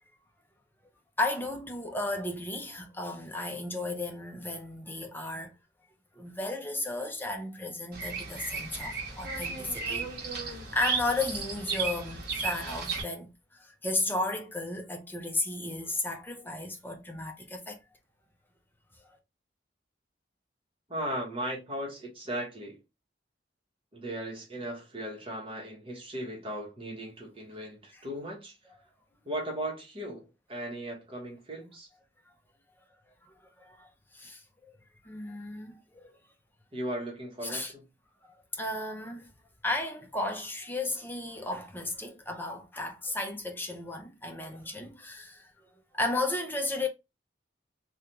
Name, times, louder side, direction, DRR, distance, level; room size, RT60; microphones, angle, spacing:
voice 1, 1.2-5.5 6.2-10.1 10.5-17.8 19.0-19.2 27.9-28.0 33.2-34.7 35.0-36.1 37.4-37.7 38.2-39.3 39.6-45.7 45.9-46.9, left 2 dB, 10° left, 0.6 m, -34 dB
Bird vocalization bird call bird song, 7.9-13.0, right 5 dB, 60° right, 1.0 m, -34 dB
voice 2, 20.9-22.8 23.9-28.6 29.2-31.9 36.7-37.8, right 1 dB, 30° right, 1.2 m, -37 dB
3.2 x 2.4 x 2.8 m
head